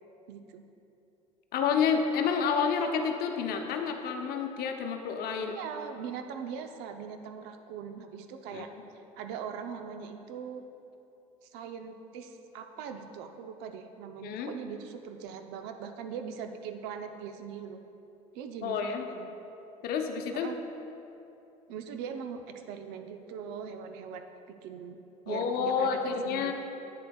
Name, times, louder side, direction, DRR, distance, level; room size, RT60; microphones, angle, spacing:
voice 1, 0.3-0.6 5.5-8.7 8.9-10.6 11.4-17.8 18.3-19.3 20.3-20.6 21.7-24.2 24.6-25.0 25.2-26.5, right 7 dB, 65° right, 7 dB, 0.7 m, -41 dB
voice 2, 1.5-5.6 8.5-8.6 14.2-14.5 18.6-19.1 19.8-20.5 25.3-26.5, left 6 dB, 55° left, 4 dB, 0.8 m, -29 dB
11.0 x 8.5 x 2.3 m, 2.9 s
hypercardioid pair, 70°, 19 cm